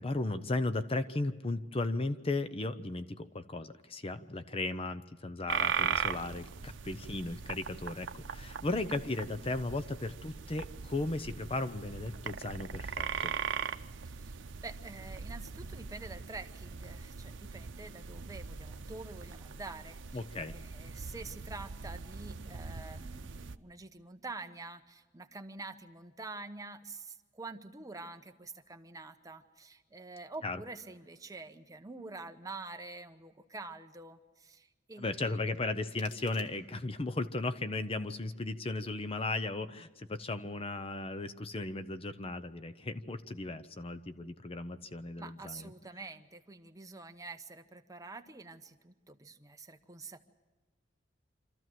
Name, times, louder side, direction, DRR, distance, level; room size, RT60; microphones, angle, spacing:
voice 1, 0.0-13.3 20.1-20.5 30.4-30.6 35.0-45.7, left 2 dB, 30° left, 12 dB, 0.7 m, -36 dB
sound 1, 5.5-23.6, right 6 dB, 90° right, 0.7 m, -40 dB
voice 2, 14.0-35.5 45.2-50.2, right 3 dB, 20° right, 7 dB, 0.9 m, -47 dB
sound 2, 35.5-37.0, left 4 dB, 80° left, 2.3 m, -58 dB
26.0 x 14.0 x 7.7 m, 1.3 s
head